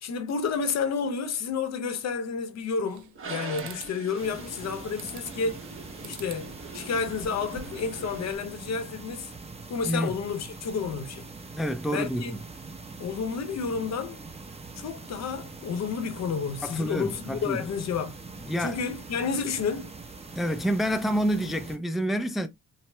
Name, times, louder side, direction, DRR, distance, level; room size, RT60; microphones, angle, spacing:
voice 1, 0.0-5.7 6.0-9.3 9.7-11.3 11.9-12.3 13.0-14.2 14.8-18.2 18.6-19.9, left 5 dB, 60° left, 0.7 m, -30 dB
sound 1, 2.6-3.3 3.6-3.9 5.0-5.5 6.0-6.4 6.8-7.9, right 7 dB, 70° right, 0.7 m, -46 dB
Toilet flush, 3.1-8.3, right 4 dB, 45° right, 1.0 m, -43 dB
sound 2, 4.2-21.8, right 3 dB, 20° right, 0.8 m, -43 dB
voice 2, 11.5-12.4 16.6-17.6 18.5-18.8 20.4-22.5, equal, ahead, 0.4 m, -28 dB
4.2 x 2.0 x 2.2 m
cardioid pair, 90°, 30 cm